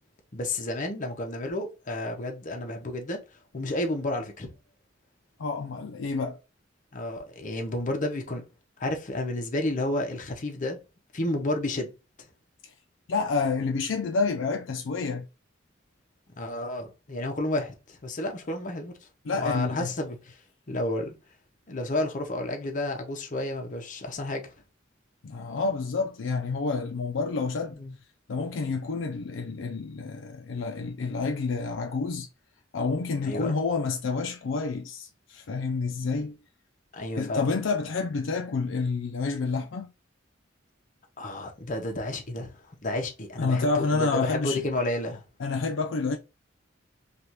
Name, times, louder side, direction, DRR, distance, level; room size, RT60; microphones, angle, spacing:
voice 1, 0.3-3.2 3.5-4.5 6.9-8.4 8.8-10.8 11.1-11.9 16.3-18.9 19.3-20.4 20.7-21.1 21.7-24.5 27.8-27.9 33.2-33.5 36.9-37.5 41.2-45.2, left 1 dB, 40° left, 0.8 m, -31 dB
voice 2, 5.4-6.4 12.6-12.7 13.1-15.3 19.3-19.9 25.2-27.8 28.3-32.3 32.7-36.4 37.2-39.9 43.4-44.7 45.4-46.2, left 4 dB, 70° left, 0.5 m, -29 dB
3.3 x 2.4 x 2.8 m
head